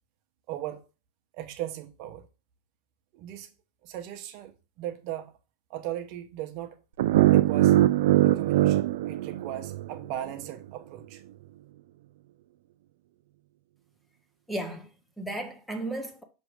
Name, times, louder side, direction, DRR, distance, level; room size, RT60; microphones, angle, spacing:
voice 1, 0.5-0.8 1.3-2.3 3.1-3.5 3.8-5.3 5.7-6.8 7.3-7.8 8.2-11.2, right 12 dB, 45° right, 0.8 m, -38 dB
sound 1, 7.0-10.1, right 15 dB, 70° right, 0.3 m, -22 dB
voice 2, 14.5-16.2, right 1 dB, ahead, 0.8 m, -35 dB
6.2 x 3.1 x 4.9 m
supercardioid pair, 155°, 0 cm